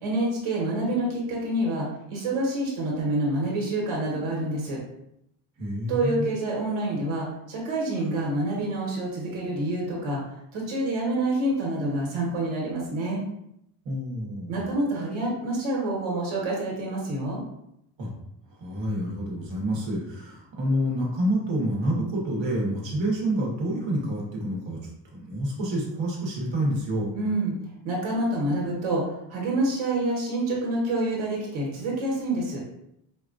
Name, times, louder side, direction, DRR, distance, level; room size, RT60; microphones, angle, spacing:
voice 1, 0.0-4.8 5.9-10.2 10.5-13.2 14.5-17.4 27.1-27.6 27.8-32.6, right 1 dB, 85° right, -3 dB, 1.5 m, -27 dB
voice 2, 5.6-6.3 13.8-14.6 18.0-18.1 18.6-24.8 25.0-27.1, right 1 dB, 65° right, -2 dB, 1.3 m, -28 dB
4.9 x 2.4 x 2.5 m, 0.79 s
cardioid pair, 175°, 48 cm